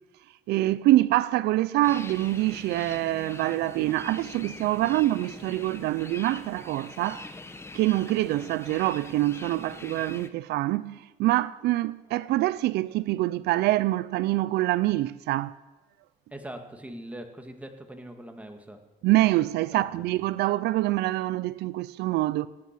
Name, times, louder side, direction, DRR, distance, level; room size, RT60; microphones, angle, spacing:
voice 1, 0.5-7.3 7.7-15.6 19.0-22.5, right 16 dB, 80° right, 0.5 m, -25 dB
sound 1, 1.8-10.3, left 2 dB, 15° left, 1.1 m, -43 dB
voice 2, 16.3-18.8 19.7-19.9, right 1 dB, 10° right, 2.0 m, -41 dB
18.0 x 9.6 x 7.5 m
cardioid pair, 110°, 17 cm